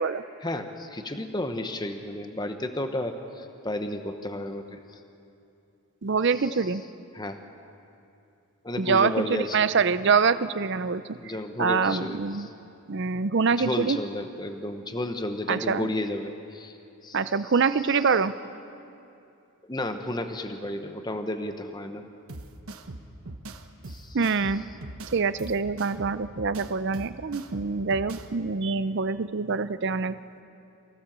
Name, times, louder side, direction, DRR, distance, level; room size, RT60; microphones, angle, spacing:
voice 1, 0.4-5.0 6.2-6.7 7.1-7.4 8.6-9.7 11.1-12.5 13.5-16.8 17.0-17.5 17.8-18.2 19.6-22.1 23.9-24.6, left 1 dB, 20° left, 7 dB, 0.9 m, -33 dB
voice 2, 6.0-6.8 8.8-11.0 11.6-12.5 12.9-14.0 15.5-15.9 17.1-18.3 24.1-24.6 25.1-30.2, right 5 dB, 50° right, 14 dB, 0.5 m, -25 dB
sound 1, 22.3-28.3, right 2 dB, 70° right, 1.1 m, -41 dB
24.0 x 16.0 x 7.4 m, 2.7 s
head